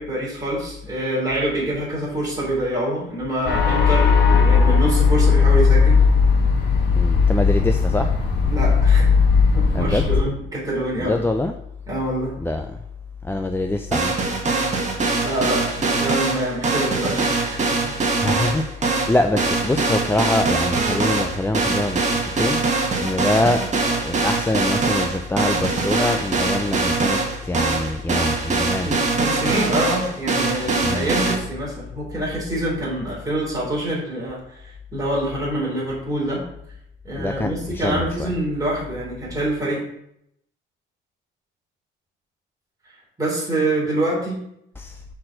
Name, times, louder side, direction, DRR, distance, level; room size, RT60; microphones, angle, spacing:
voice 1, 0.0-6.0 8.4-9.2 9.4-11.2 11.9-12.3 15.2-18.0 28.8-36.4 37.0-39.8 43.2-44.4, right 1 dB, 15° right, -6 dB, 3.1 m, -26 dB
sound 1, 3.5-10.2, left 5 dB, 60° left, 1.5 m, -17 dB
voice 2, 7.0-8.1 9.7-10.1 11.1-11.5 12.4-12.7 13.2-14.1 18.2-23.6 23.9-28.9 30.8-31.1 37.2-38.3 44.8-45.0, left 2 dB, 10° left, 5 dB, 0.5 m, -24 dB
sound 2, 13.9-31.4, right 3 dB, 35° right, 1.6 m, -22 dB
5.8 x 4.5 x 6.3 m, 0.76 s
cardioid pair, 90°, 20 cm